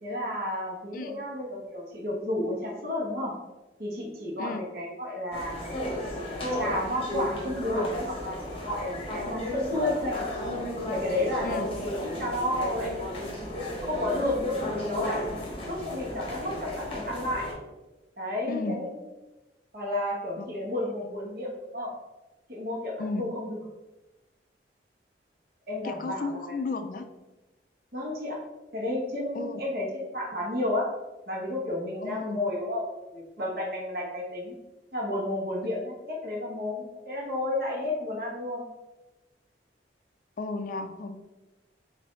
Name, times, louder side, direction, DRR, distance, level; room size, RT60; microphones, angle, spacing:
voice 1, 0.0-3.3 3.8-5.7 6.5-10.3 10.8-15.3 15.7-17.4 18.2-18.9 19.7-21.9 22.5-23.6 25.7-26.5 27.9-28.4 28.7-30.9 31.3-34.5 34.9-38.6, left 1 dB, 60° right, -2 dB, 1.1 m, -32 dB
voice 2, 0.9-1.2 4.4-4.6 11.4-11.7 18.5-18.8 20.4-20.5 23.0-23.2 25.8-27.1 29.3-29.6 32.0-32.4 40.4-41.2, left 3 dB, 50° left, 7 dB, 0.3 m, -34 dB
sound 1, 5.3-17.5, left 1 dB, 30° left, 0.9 m, -34 dB
4.1 x 2.7 x 3.7 m, 1.1 s
head